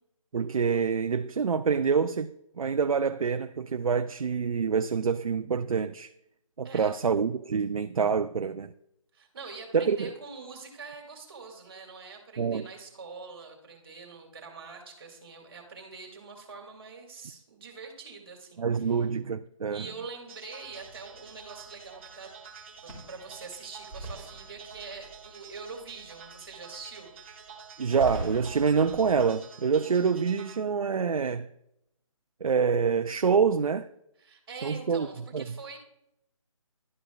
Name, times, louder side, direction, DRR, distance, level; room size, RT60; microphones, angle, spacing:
voice 1, 0.3-6.1 6.6-8.7 9.7-10.1 12.4-12.7 18.6-19.8 27.8-31.5 32.4-33.9 34.6-35.1 35.3-35.4, right 6 dB, 85° right, 0.4 m, -26 dB
voice 2, 6.6-7.0 9.1-19.1 19.7-22.3 22.8-27.1 34.2-35.8, right 4 dB, 45° right, 2.1 m, -44 dB
sound 1, 20.3-30.6, right 6 dB, 20° right, 0.9 m, -49 dB
sound 2, 20.6-29.3, right 2 dB, 10° left, 2.6 m, -44 dB
12.0 x 5.0 x 2.4 m
figure-of-eight pair, 160°, 18 cm